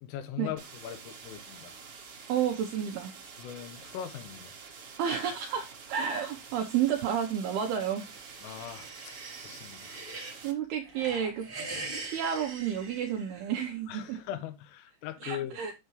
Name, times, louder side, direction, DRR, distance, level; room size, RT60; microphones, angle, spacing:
voice 1, 0.0-1.7 3.4-4.5 8.4-9.2 9.4-10.0 13.9-15.6, left 11 dB, 85° left, 3.7 m, -40 dB
sound 1, 0.6-10.5, right 5 dB, 60° right, 1.6 m, -48 dB
voice 2, 2.3-3.1 5.0-8.1 10.4-11.5 12.0-14.2 15.2-15.7, right 8 dB, 80° right, 2.3 m, -31 dB
sound 2, 7.7-10.4 10.8-13.7, right 3 dB, 40° right, 0.7 m, -43 dB
9.3 x 6.9 x 3.1 m
omnidirectional pair, 5.7 m